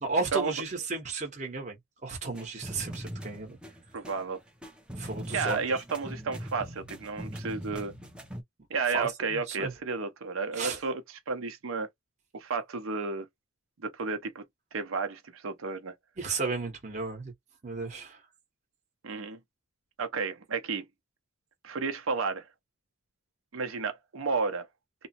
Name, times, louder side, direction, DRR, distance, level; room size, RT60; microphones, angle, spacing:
voice 1, 0.0-1.8 2.0-3.6 5.0-5.8 8.9-9.7 10.5-10.8 16.2-17.3 17.6-18.2, right 3 dB, 35° right, 0.9 m, -34 dB
sound 1, 2.3-8.4, equal, 5° right, 0.5 m, -41 dB
voice 2, 3.9-4.4 5.3-7.9 8.7-11.9 12.3-13.3 13.8-14.4 14.7-15.9 19.0-19.4 20.0-20.9 21.6-22.5 23.5-24.7, right 4 dB, 70° right, 0.6 m, -32 dB
3.0 x 2.0 x 2.8 m
head